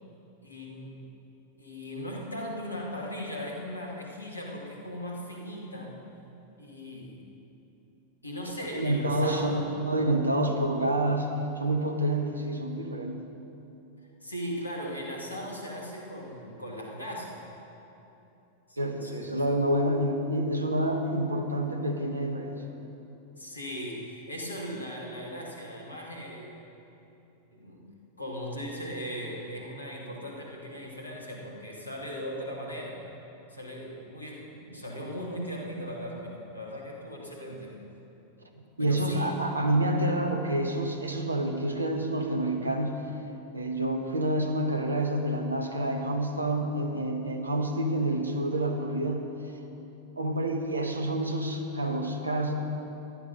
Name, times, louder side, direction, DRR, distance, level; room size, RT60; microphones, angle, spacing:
voice 1, 0.4-1.1 1.6-6.0 6.6-7.2 8.2-9.7 14.2-17.4 18.7-19.2 23.4-26.5 27.5-27.9 28.2-33.0 33.5-37.8 38.8-39.4, equal, 80° left, -1 dB, 2.5 m, -38 dB
voice 2, 8.7-13.2 18.8-22.6 38.8-43.0 43.5-49.3 50.2-52.5, right 1 dB, 80° right, 4 dB, 1.4 m, -28 dB
14.5 x 12.0 x 5.4 m, 2.9 s
figure-of-eight pair, 90°, 0 cm